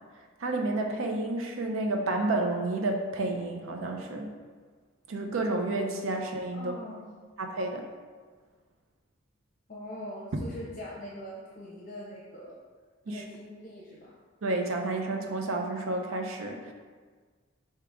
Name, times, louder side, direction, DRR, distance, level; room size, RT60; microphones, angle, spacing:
voice 1, 0.4-4.3 5.1-6.7 7.4-7.9 13.1-13.2 14.4-16.7, right 2 dB, 80° right, 3 dB, 0.5 m, -30 dB
voice 2, 6.5-7.0 9.7-12.6 13.1-14.1, equal, 40° left, -5 dB, 0.6 m, -42 dB
4.8 x 2.9 x 3.5 m, 1.5 s
head